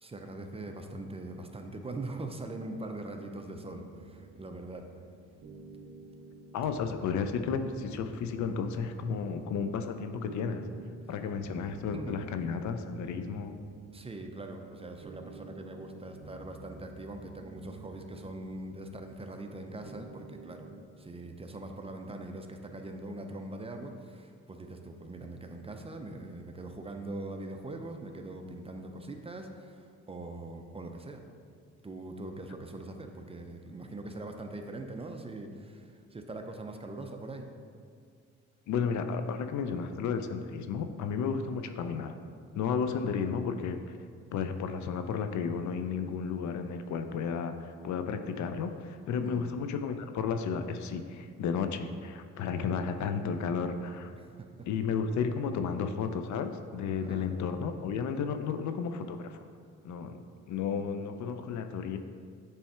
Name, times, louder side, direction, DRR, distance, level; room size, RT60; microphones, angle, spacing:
voice 1, 0.0-4.9 11.9-12.2 13.9-20.7 21.0-31.3 31.8-37.5 49.2-49.5 54.1-54.7 57.0-57.4, right 2 dB, 20° right, 4 dB, 0.5 m, -42 dB
sound 1, 3.5-20.8, right 3 dB, 45° right, 0.8 m, -51 dB
voice 2, 6.5-10.7 11.1-13.5 38.7-42.2 42.5-44.0 44.3-54.1 54.7-59.4 59.8-60.2 60.5-62.0, left 6 dB, 70° left, 8 dB, 0.5 m, -33 dB
7.3 x 3.4 x 4.3 m, 2.2 s
cardioid pair, 90°, 30 cm